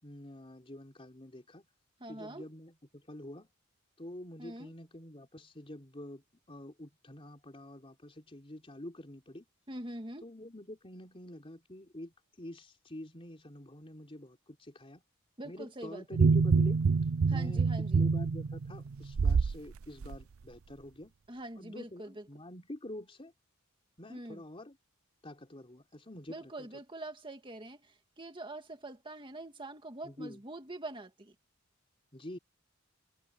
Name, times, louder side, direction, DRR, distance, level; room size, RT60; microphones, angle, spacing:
voice 1, 0.0-1.7 2.1-3.5 4.0-9.5 10.2-15.0 15.4-16.8 17.3-17.7 17.9-21.1 21.6-23.3 24.0-24.8 25.2-26.7 30.0-30.4 32.1-32.4, left 1 dB, 25° left, 3.5 m, -47 dB
voice 2, 2.0-2.5 4.4-4.7 9.7-10.2 15.4-16.0 17.3-18.1 21.3-22.2 24.1-24.4 26.3-31.3, right 1 dB, 25° right, 2.1 m, -44 dB
sound 1, 16.1-19.6 20.0-20.2, right 4 dB, 90° right, 0.5 m, -26 dB
head